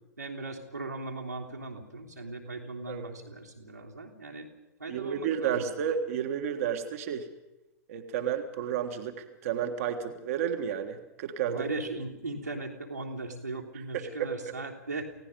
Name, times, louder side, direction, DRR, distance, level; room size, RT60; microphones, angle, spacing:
voice 1, 0.2-4.5 4.8-5.7 11.5-15.0, right 3 dB, 85° right, -2 dB, 3.4 m, -38 dB
voice 2, 4.9-7.3 7.9-11.7 13.9-14.3, right 8 dB, 55° right, 6 dB, 1.7 m, -32 dB
28.5 x 17.5 x 5.4 m, 0.97 s
figure-of-eight pair, 90°, 9 cm